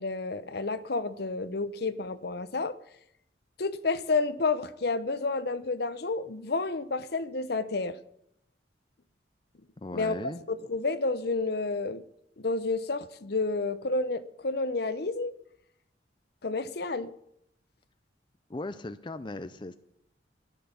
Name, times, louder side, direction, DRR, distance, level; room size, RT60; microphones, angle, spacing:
voice 1, 0.0-2.7 3.6-8.0 9.9-10.1 10.5-12.0 12.4-15.3 16.4-17.1, left 3 dB, 55° left, 0.8 m, -30 dB
voice 2, 9.8-10.4 18.5-19.7, left 2 dB, 25° left, 0.5 m, -38 dB
14.0 x 11.0 x 7.1 m
head